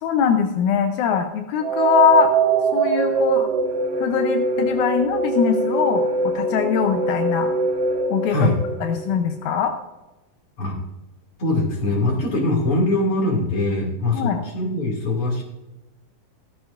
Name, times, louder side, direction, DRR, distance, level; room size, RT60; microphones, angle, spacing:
voice 1, 0.0-2.3 2.7-3.5 4.0-7.5 8.1-8.5 8.8-9.7 14.1-14.4, left 8 dB, 75° left, 5 dB, 1.8 m, -22 dB
sound 1, 1.6-9.6, right 4 dB, 85° right, 1.3 m, -22 dB
voice 2, 11.4-15.4, left 2 dB, 40° left, -1 dB, 3.0 m, -22 dB
16.5 x 14.0 x 2.5 m, 1.0 s
omnidirectional pair, 4.3 m